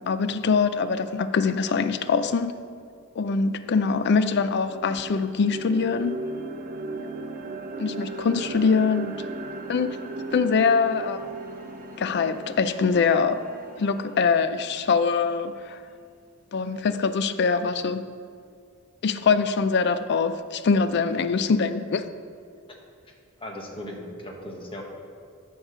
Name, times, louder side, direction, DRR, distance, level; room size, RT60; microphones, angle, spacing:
voice 1, 0.1-2.5 3.2-6.2 7.8-9.1 9.7-10.0 10.3-11.2 12.0-13.4 13.8-15.8 16.5-18.0 19.0-22.0, left 5 dB, 55° left, 12 dB, 0.4 m, -23 dB
sound 1, 3.3-3.4 3.8-15.9, right 3 dB, 40° right, 0.9 m, -37 dB
voice 2, 23.4-24.8, left 1 dB, 25° left, 0 dB, 1.3 m, -37 dB
11.0 x 4.7 x 6.7 m, 2.2 s
head